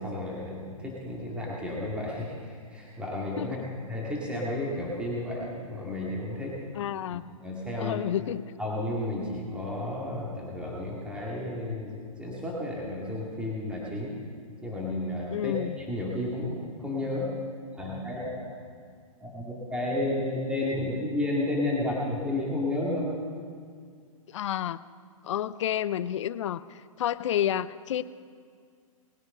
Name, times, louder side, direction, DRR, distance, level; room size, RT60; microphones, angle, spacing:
voice 1, 0.0-3.6 3.9-6.6 7.1-8.0 8.6-14.2 14.6-17.3 17.7-18.5 19.2-23.2, left 1 dB, 5° right, -5 dB, 2.3 m, -32 dB
voice 2, 3.4-3.7 6.8-7.2 7.8-8.4 15.3-15.7 24.3-24.8 25.2-28.0, left 11 dB, 55° left, 16 dB, 0.5 m, -30 dB
20.0 x 9.6 x 5.6 m, 2.1 s
hypercardioid pair, 130°, 18 cm